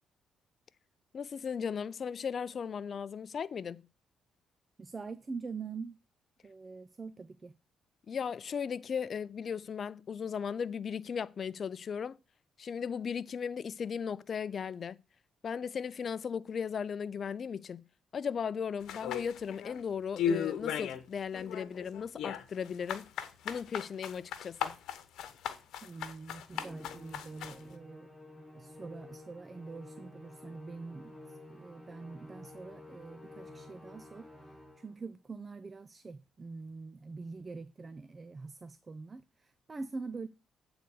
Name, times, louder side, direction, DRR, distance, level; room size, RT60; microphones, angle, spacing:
voice 1, 1.1-3.8 8.1-12.2 12.6-15.0 15.4-17.8 18.1-23.1 23.4-24.8, left 7 dB, 50° left, 0.5 m, -36 dB
voice 2, 4.8-6.0 6.4-7.5 25.8-28.1 28.5-34.3 34.8-40.3, right 4 dB, 30° right, 0.5 m, -44 dB
sound 1, 18.9-19.8 20.2-21.0 21.3-27.6, left 8 dB, 80° left, 1.0 m, -36 dB
Musical instrument, 26.5-35.0, left 1 dB, 5° right, 3.9 m, -51 dB
8.3 x 4.0 x 6.5 m
cardioid pair, 90°, 0 cm